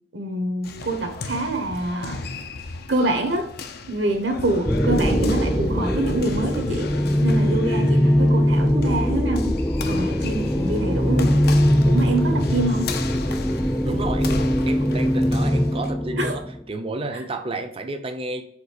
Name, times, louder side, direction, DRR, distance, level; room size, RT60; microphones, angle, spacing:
voice 1, 0.1-2.2 2.9-3.5 3.9-6.9 7.2-9.6 9.9-11.4 11.8-13.0 16.2-16.4, right 2 dB, 65° right, 5 dB, 1.2 m, -26 dB
sound 1, 0.6-15.9, left 4 dB, 55° left, 0.6 m, -36 dB
sound 2, 4.7-16.6, equal, 10° left, 0.6 m, -21 dB
voice 2, 13.8-14.4 14.7-18.4, right 2 dB, 30° right, 7 dB, 0.6 m, -31 dB
5.0 x 3.8 x 4.9 m, 0.66 s
head